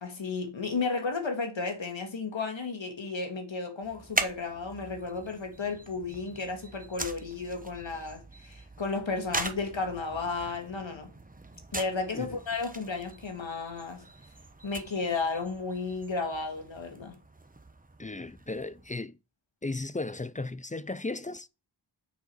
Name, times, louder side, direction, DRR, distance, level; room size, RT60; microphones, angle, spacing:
voice 1, 0.0-11.1 11.7-14.1 14.6-17.2, left 4 dB, 70° left, 2.0 m, -33 dB
sound 1, 3.8-19.0, right 2 dB, 15° right, 0.9 m, -41 dB
voice 2, 18.0-19.2 19.6-21.5, left 2 dB, 20° left, 0.4 m, -35 dB
6.6 x 5.2 x 5.5 m
wide cardioid pair, 70°, 47 cm